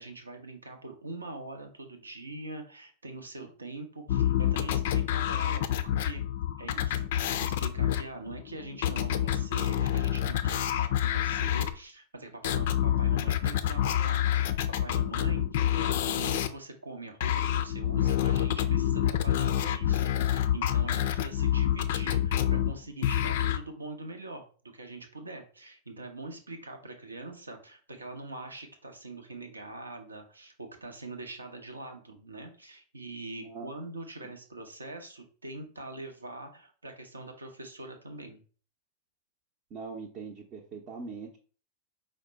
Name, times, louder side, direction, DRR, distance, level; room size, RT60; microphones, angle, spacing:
voice 1, 0.0-6.2 6.6-38.4, right 2 dB, 75° right, 5 dB, 0.7 m, -43 dB
sound 1, 4.1-11.7 12.4-16.5 17.2-23.6, left 11 dB, 55° left, 0.4 m, -27 dB
voice 2, 33.4-33.7 34.2-34.3 39.7-41.4, right 5 dB, 40° right, -1 dB, 0.7 m, -42 dB
5.0 x 2.1 x 4.1 m, 0.40 s
figure-of-eight pair, 90°, 0 cm